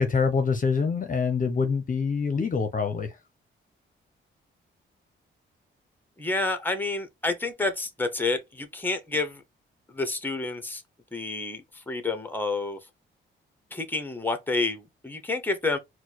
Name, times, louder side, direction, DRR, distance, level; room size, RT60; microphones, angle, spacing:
voice 1, 0.0-3.1, left 5 dB, 40° left, 0.8 m, -25 dB
voice 2, 6.2-9.4 9.9-10.8 11.1-12.8 13.7-15.8, left 3 dB, 10° left, 1.0 m, -29 dB
4.4 x 2.3 x 4.1 m
cardioid pair, 95°, 21 cm